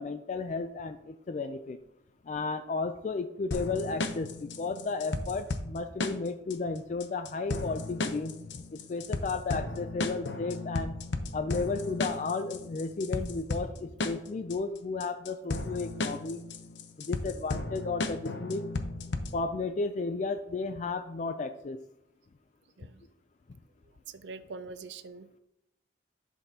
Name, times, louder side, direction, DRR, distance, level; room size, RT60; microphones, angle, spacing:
voice 1, 0.0-1.8 2.3-8.6 8.9-11.0 11.3-16.4 17.0-18.7 19.3-21.8, left 3 dB, 40° left, 8 dB, 0.4 m, -33 dB
sound 1, 3.5-19.5, left 2 dB, 85° left, 0.7 m, -35 dB
voice 2, 24.1-25.3, right 4 dB, 80° right, 11 dB, 0.5 m, -43 dB
11.0 x 6.2 x 2.8 m, 0.84 s
head